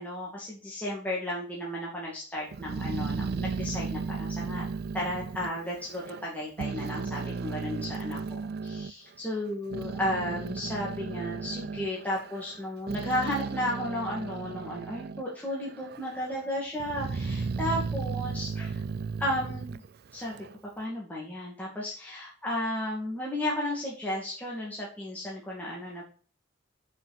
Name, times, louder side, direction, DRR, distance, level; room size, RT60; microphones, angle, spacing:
voice 1, 0.0-4.7 4.9-18.8 19.2-19.8 20.1-20.5 20.8-26.0, left 1 dB, 10° left, -5 dB, 2.3 m, -34 dB
Growling, 2.5-6.3 6.6-8.9 9.5-15.3 15.6-16.3 16.8-20.6, right 4 dB, 50° right, 0.4 m, -35 dB
8.8 x 6.1 x 4.2 m, 0.41 s
head